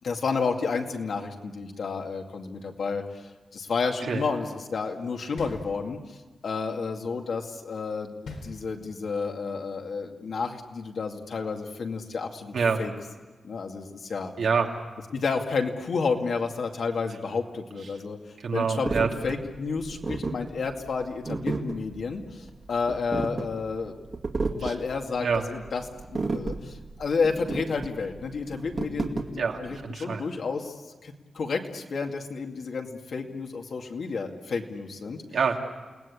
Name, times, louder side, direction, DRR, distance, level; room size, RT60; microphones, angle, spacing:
voice 1, 0.0-6.2 6.4-8.1 8.4-12.9 13.4-14.3 15.1-18.2 18.5-24.0 24.6-30.7 31.0-35.2, left 4 dB, 65° left, 2 dB, 2.3 m, -31 dB
sound 1, 5.4-6.3 8.2-9.2, left 3 dB, 85° left, 4.3 m, -41 dB
voice 2, 14.4-14.7 18.4-19.1 24.6-24.7 25.2-25.4 29.4-30.2 35.3-35.6, right 5 dB, 80° right, 1 dB, 2.9 m, -26 dB
sound 2, 18.9-29.8, right 3 dB, 40° right, 2.2 m, -33 dB
29.0 x 19.0 x 8.6 m, 1.3 s
wide cardioid pair, 155°, 0 cm